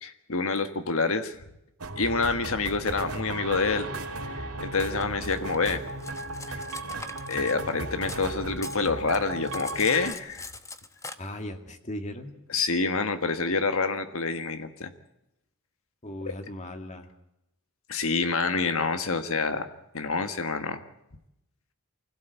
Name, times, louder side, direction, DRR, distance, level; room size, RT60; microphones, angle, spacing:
voice 1, 0.0-1.3 2.0-3.9 4.3-5.8 6.5-6.6 7.3-10.5 12.5-14.9 17.9-19.7 19.9-20.8, left 4 dB, 70° left, 9 dB, 1.5 m, -27 dB
sound 1, 1.8-10.1, right 2 dB, 90° right, 3.1 m, -36 dB
Cutlery silverware, 5.0-8.3 8.6-11.1, left 3 dB, 15° left, 1.1 m, -42 dB
voice 2, 11.2-12.4 16.0-17.1, left 1 dB, 35° left, 6 dB, 2.1 m, -37 dB
25.0 x 16.5 x 8.1 m, 0.87 s
head